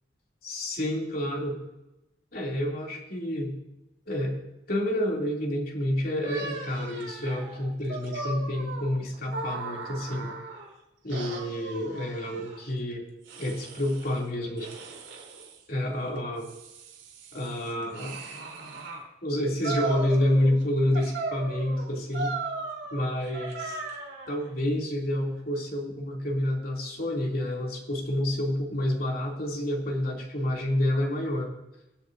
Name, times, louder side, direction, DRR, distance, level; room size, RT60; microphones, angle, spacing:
voice 1, 0.4-1.6 2.3-3.5 4.1-4.4 4.7-10.3 11.0-13.0 13.4-14.7 15.7-16.5 17.3-18.1 19.2-22.3 22.9-23.8 24.3-31.5, left 1 dB, 50° left, -2 dB, 2.9 m, -28 dB
sound 1, 6.2-10.7 11.1-12.6 13.2-14.2 14.6-15.6 16.2-19.0 19.6-20.6 20.9-24.4, right 3 dB, 90° right, 3.8 m, -37 dB
24.5 x 8.5 x 2.7 m, 0.96 s
head